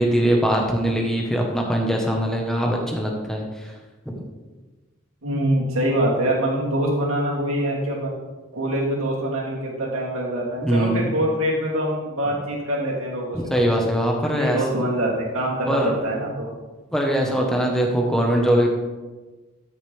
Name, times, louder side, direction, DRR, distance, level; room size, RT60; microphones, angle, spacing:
voice 1, 0.0-3.7 4.1-4.3 10.6-11.1 13.5-14.6 15.6-15.9 16.9-18.7, equal, ahead, 0 dB, 1.1 m, -21 dB
voice 2, 5.2-8.1 8.5-13.7 14.3-16.5, right 1 dB, 90° right, -4 dB, 2.7 m, -24 dB
13.0 x 6.7 x 3.4 m, 1.3 s
head